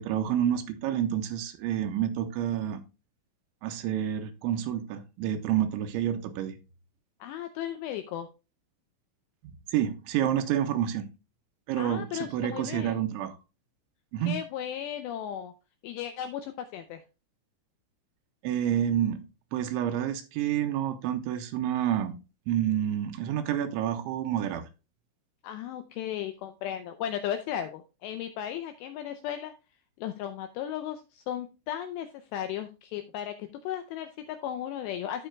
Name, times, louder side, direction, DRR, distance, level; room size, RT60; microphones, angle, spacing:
voice 1, 0.0-2.8 3.6-6.6 9.4-11.1 11.7-13.4 14.1-14.4 18.4-19.3 19.5-22.2 22.5-24.7, right 10 dB, 85° right, 3.0 m, -29 dB
voice 2, 7.2-8.3 11.7-13.0 14.3-15.5 15.8-17.0 25.4-29.5 30.0-35.3, left 10 dB, 85° left, 2.5 m, -35 dB
15.5 x 5.5 x 2.2 m
omnidirectional pair, 5.6 m